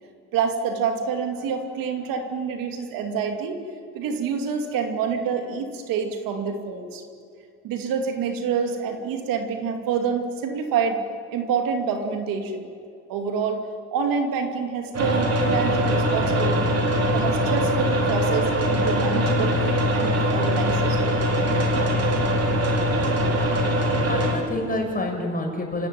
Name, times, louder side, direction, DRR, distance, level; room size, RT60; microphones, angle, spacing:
voice 1, 0.3-3.6 3.9-7.0 7.6-11.0 11.3-12.7 13.1-16.8 17.1-21.2, right 6 dB, 80° right, 5 dB, 2.6 m, -27 dB
sound 1, 14.9-24.3, equal, 50° right, 4.9 m, -22 dB
voice 2, 23.0-25.9, left 1 dB, 25° left, 2 dB, 6.4 m, -29 dB
27.5 x 15.5 x 9.4 m, 2.4 s
cardioid pair, 80°, 33 cm